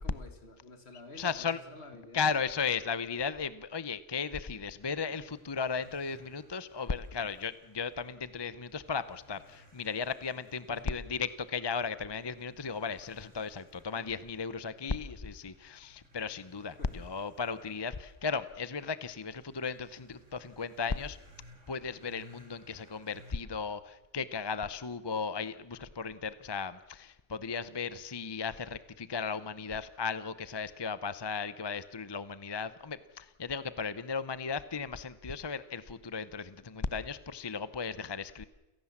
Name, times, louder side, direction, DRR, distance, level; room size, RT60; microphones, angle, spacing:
voice 1, 0.0-2.3 10.7-10.9 16.8-17.1, left 2 dB, 60° left, 8 dB, 2.4 m, -50 dB
voice 2, 1.2-1.6 2.1-21.2 21.7-38.5, left 5 dB, 25° left, 15 dB, 0.7 m, -36 dB
sound 1, 4.8-23.3, equal, 85° right, 3.2 m, -61 dB
29.0 x 17.0 x 7.3 m, 1.1 s
omnidirectional pair, 1.2 m